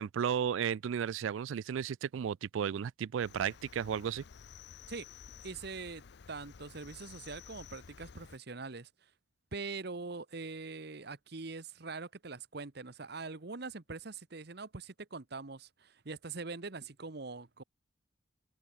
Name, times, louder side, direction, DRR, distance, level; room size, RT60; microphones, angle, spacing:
voice 1, 0.0-4.2, right 8 dB, 85° right, 0.3 m, -34 dB
Cricket, 3.2-8.4, left 6 dB, 60° left, 0.5 m, -53 dB
voice 2, 4.9-9.1 9.5-17.6, right 4 dB, 55° right, 1.1 m, -43 dB
head